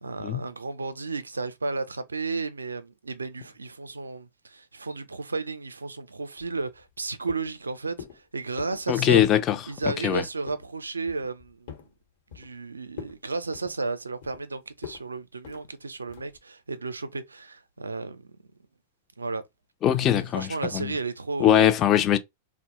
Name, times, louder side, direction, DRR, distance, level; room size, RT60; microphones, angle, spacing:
voice 1, 0.0-9.2 9.7-11.8 12.3-18.3 19.2-19.4 20.3-21.7, right 3 dB, 85° right, 0.4 m, -33 dB
sound 1, 6.4-7.0 7.3-7.6 8.0-8.2 8.6-8.9 9.2-9.5 9.7-10.1 10.5-10.7 11.1-11.9 12.3-12.6 12.9-13.2 13.5-14.4 14.8-15.0 15.4-15.6 16.1-16.4, left 8 dB, 60° left, 0.9 m, -43 dB
voice 2, 8.9-9.6 10.0-10.2 19.8-20.9 21.4-22.2, left 11 dB, 35° left, 0.4 m, -21 dB
2.0 x 2.0 x 2.9 m
figure-of-eight pair, 95°, 0 cm